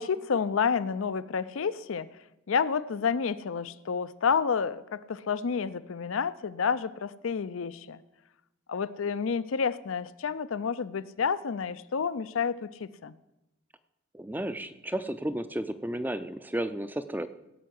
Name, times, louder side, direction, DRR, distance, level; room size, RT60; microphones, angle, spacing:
voice 1, 0.0-2.1 2.5-8.0 8.7-13.1, left 6 dB, 80° left, 16 dB, 0.5 m, -29 dB
voice 2, 14.1-17.3, right 1 dB, 10° right, 12 dB, 0.4 m, -33 dB
16.0 x 5.6 x 7.7 m, 0.93 s
head